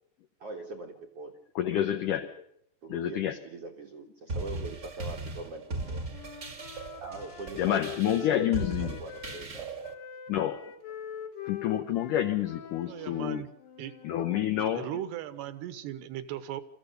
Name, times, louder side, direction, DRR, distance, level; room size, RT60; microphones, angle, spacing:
voice 1, 0.4-1.3 2.8-6.0 7.0-8.5 8.8-9.7, right 3 dB, 60° right, 2 dB, 1.6 m, -42 dB
voice 2, 1.6-2.3 2.9-3.4 7.6-9.0 10.3-10.6 11.4-13.4 14.0-14.9, left 11 dB, 80° left, 8 dB, 1.8 m, -28 dB
sound 1, 4.3-9.9, right 2 dB, 35° right, 1.2 m, -38 dB
Wind instrument woodwind instrument, 5.7-9.5 9.8-14.3, left 9 dB, 65° left, 2.7 m, -43 dB
voice 3, 12.9-13.5 13.8-13.9 14.7-16.6, right 12 dB, 75° right, 12 dB, 3.0 m, -37 dB
27.0 x 14.5 x 6.7 m, 0.71 s
omnidirectional pair, 5.0 m